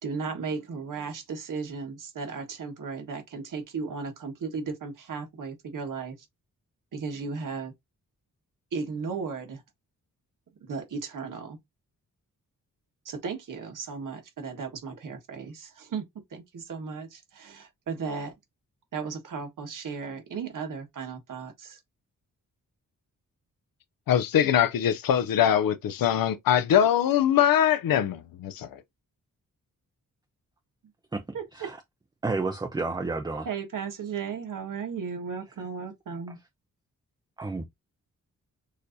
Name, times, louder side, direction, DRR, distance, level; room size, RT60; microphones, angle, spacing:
voice 1, 0.0-6.2 6.9-7.7 8.7-9.6 10.6-11.6 13.0-16.0 16.3-18.3 18.9-21.8 31.3-31.7 33.4-36.4, right 5 dB, 65° right, 1.4 m, -35 dB
voice 2, 24.1-28.8, left 10 dB, 80° left, 0.5 m, -22 dB
voice 3, 32.2-33.5 37.4-37.6, right 3 dB, 15° right, 0.4 m, -30 dB
6.3 x 2.7 x 2.6 m
wide cardioid pair, 180°, 34 cm